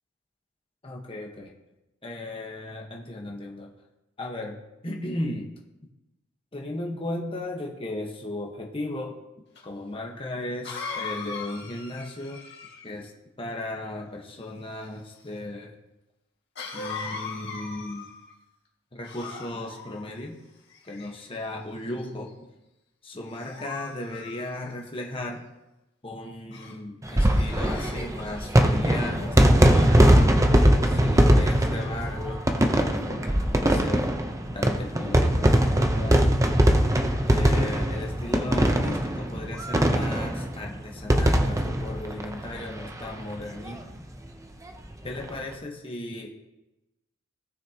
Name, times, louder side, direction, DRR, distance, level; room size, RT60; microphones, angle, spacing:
voice 1, 0.8-1.5 2.0-3.7 4.2-5.5 6.5-9.2 9.6-12.4 12.8-13.1 13.4-15.7 16.7-18.1 18.9-20.4 20.8-22.3 23.0-25.5 26.0-30.3 30.8-32.4 32.8-34.1 34.5-36.3 37.3-43.8 45.0-46.3, left 1 dB, 25° left, 0 dB, 1.3 m, -36 dB
Cough, 9.6-9.7 10.6-13.0 16.6-18.3 19.0-19.9 20.7-21.4 22.0-22.3 23.3-24.9 26.5-26.8 27.2-28.1, left 4 dB, 60° left, 2.0 m, -39 dB
sound 1, 27.0-43.1 43.4-43.5 43.7-43.8 45.0-45.3, equal, 15° right, 0.8 m, -21 dB
18.0 x 6.3 x 2.9 m, 0.97 s
head